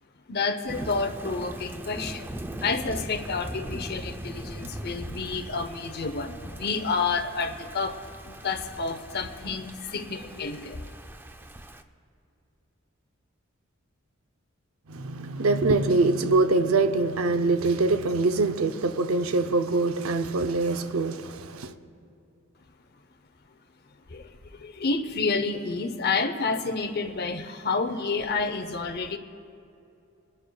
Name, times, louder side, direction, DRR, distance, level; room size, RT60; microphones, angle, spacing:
voice 1, 0.3-8.0 8.2-10.9 24.1-29.2, left 4 dB, 50° left, 0.7 m, -29 dB
Thunder / Rain, 0.7-11.8, right 1 dB, 10° right, 0.4 m, -40 dB
voice 2, 14.9-21.7, right 3 dB, 85° right, 0.6 m, -24 dB
23.0 x 11.5 x 2.3 m
head